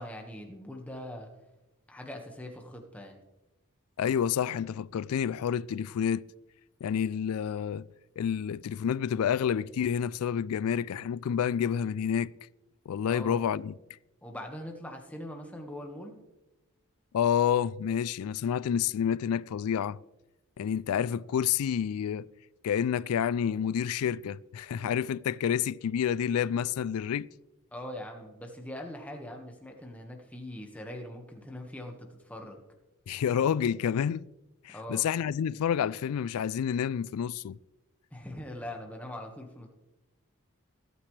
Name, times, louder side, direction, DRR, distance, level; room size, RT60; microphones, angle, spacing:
voice 1, 0.0-1.3 1.9-3.2 13.1-13.4 14.2-16.2 27.7-32.6 34.7-35.1 38.1-39.7, left 1 dB, 5° left, 1.5 m, -42 dB
voice 2, 4.0-6.2 6.8-7.9 8.2-12.3 12.9-13.7 17.1-20.0 20.6-22.3 22.6-27.3 33.1-34.2 34.6-37.6, left 8 dB, 85° left, 0.3 m, -29 dB
22.0 x 9.1 x 3.3 m
head